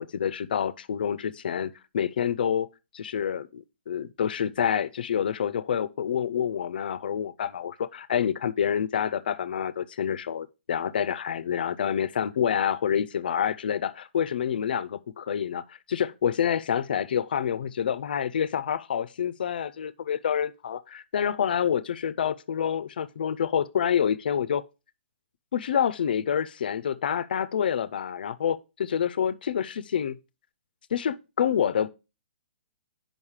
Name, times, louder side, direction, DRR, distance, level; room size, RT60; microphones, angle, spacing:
voice 1, 0.0-2.7 2.9-24.6 25.5-30.2 30.9-31.9, left 8 dB, 50° left, 0.5 m, -27 dB
7.2 x 5.4 x 4.8 m
hypercardioid pair, 175°, 6 cm